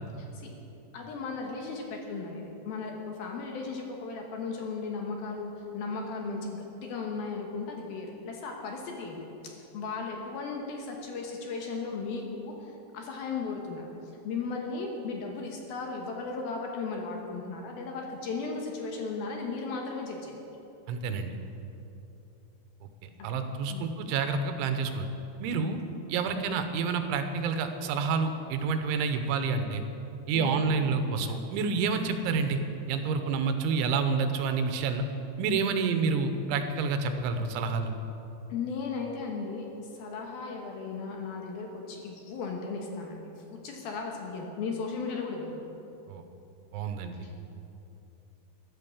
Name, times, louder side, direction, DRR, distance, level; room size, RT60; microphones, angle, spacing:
voice 1, 0.9-13.9 14.2-20.4 23.3-23.4 23.7-23.9 25.6-25.8 30.3-30.5 38.5-39.7 39.9-45.6, left 4 dB, 65° left, 1 dB, 2.7 m, -36 dB
voice 2, 20.9-21.3 23.0-25.1 25.4-25.8 26.1-29.8 30.3-32.6 32.9-35.0 35.4-37.9 46.1-46.2 46.7-47.2, right 5 dB, 90° right, 7 dB, 3.3 m, -28 dB
13.5 x 11.5 x 7.2 m, 2.9 s
omnidirectional pair, 5.2 m